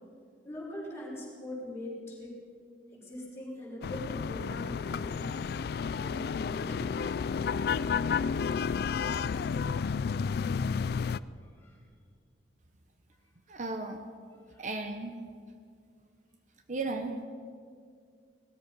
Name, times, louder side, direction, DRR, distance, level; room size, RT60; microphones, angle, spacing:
voice 1, 0.4-2.4 2.9-5.3 5.8-6.9 11.6-11.8 14.5-14.7, left 1 dB, 15° left, -6 dB, 4.7 m, -42 dB
sound 1, 3.8-11.2, left 6 dB, 60° left, 0.3 m, -31 dB
voice 2, 13.5-14.0 14.6-15.1 16.7-17.2, right 3 dB, 45° right, 6 dB, 0.9 m, -35 dB
19.0 x 13.5 x 5.4 m, 2.2 s
head